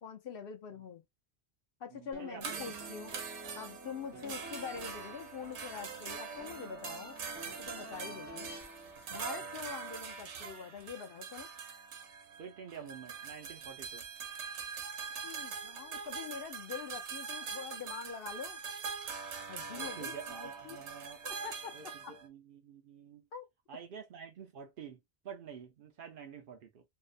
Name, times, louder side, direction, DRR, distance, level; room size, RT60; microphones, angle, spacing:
voice 1, 0.0-1.0 1.8-3.2 3.5-7.2 7.5-8.5 9.1-11.5 15.2-18.6 19.5-20.8 21.2-21.8 22.0-22.2 23.3-23.5, left 7 dB, 65° left, 0.7 m, -44 dB
voice 2, 1.9-2.9 4.1-4.3 8.0-8.2 12.4-14.0 19.7-21.2 21.7-23.3 23.7-25.0 25.2-26.8, right 7 dB, 60° right, 0.7 m, -49 dB
sound 1, 2.1-9.2, right 1 dB, 20° right, 0.4 m, -50 dB
sound 2, 2.4-22.3, right 6 dB, 85° right, 1.0 m, -43 dB
2.6 x 2.1 x 2.4 m
omnidirectional pair, 1.1 m